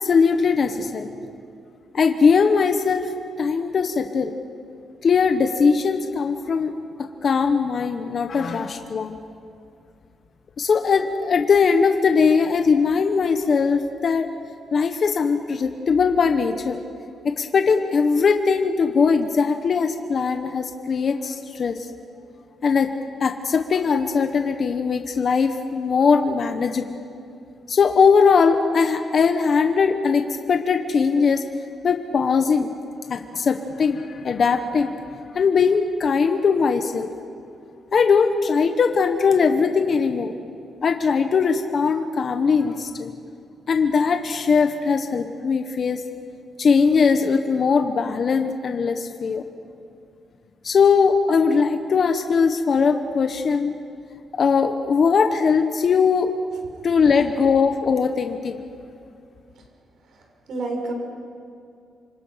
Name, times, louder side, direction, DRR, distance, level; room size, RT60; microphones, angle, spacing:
voice 1, 0.0-1.1 1.9-3.1 3.4-4.3 5.0-6.7 7.0-9.2 10.6-14.3 14.7-16.8 17.2-21.8 22.6-22.9 23.2-27.0 27.7-31.4 31.8-32.7 33.1-34.9 35.3-37.1 37.9-40.3 40.8-43.1 43.7-46.0 46.6-49.4 50.6-53.8 54.3-56.3 56.8-58.6, left 5 dB, 50° left, 6 dB, 1.2 m, -20 dB
voice 2, 60.5-60.9, right 3 dB, 70° right, 1 dB, 6.1 m, -29 dB
27.5 x 25.5 x 5.8 m, 2.4 s
cardioid pair, 130°, 0 cm